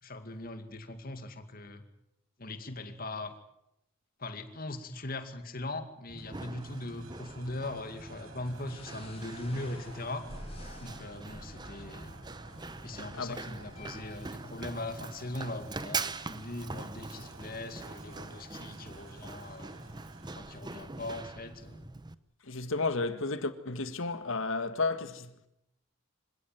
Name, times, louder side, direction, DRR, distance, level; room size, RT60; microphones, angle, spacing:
voice 1, 0.0-1.8 2.4-3.3 4.2-10.3 10.8-12.1 12.8-19.9 20.3-21.9, left 2 dB, 45° left, 2.3 m, -40 dB
Run, 6.1-22.1, right 3 dB, 20° right, 0.8 m, -43 dB
sound 1, 6.2-21.0, right 4 dB, 80° right, 2.9 m, -56 dB
sound 2, 8.7-14.4, left 1 dB, 30° left, 3.3 m, -50 dB
voice 2, 22.4-25.5, left 3 dB, 70° left, 1.8 m, -32 dB
25.5 x 17.0 x 9.4 m
head